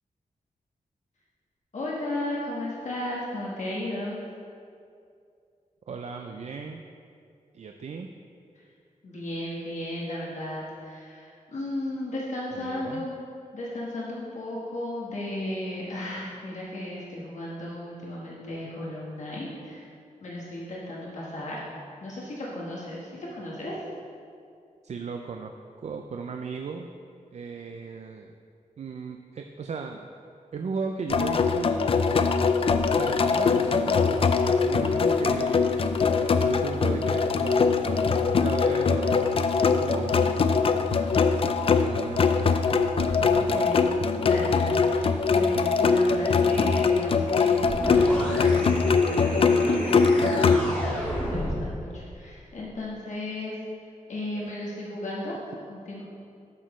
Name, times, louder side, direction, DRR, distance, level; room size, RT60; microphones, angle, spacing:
voice 1, 1.7-4.2 9.0-13.2 13.5-19.9 20.2-21.6 22.0-23.7 43.2-43.8 44.2-51.0 51.3-53.6 54.1-55.3 55.7-56.0, left 1 dB, 65° left, -5 dB, 1.3 m, -35 dB
voice 2, 5.9-6.8 7.5-8.1 12.5-13.1 24.8-26.9 27.3-28.3 28.8-30.1 30.5-32.1 32.9-36.0 36.4-42.7 43.0-43.7, right 5 dB, 55° right, 4 dB, 0.4 m, -36 dB
sound 1, 31.1-50.6, left 5 dB, 45° left, 0.4 m, -22 dB
sound 2, 47.6-51.8, equal, 10° left, 1.8 m, -32 dB
12.0 x 6.2 x 3.1 m, 2.4 s
wide cardioid pair, 160°, 13 cm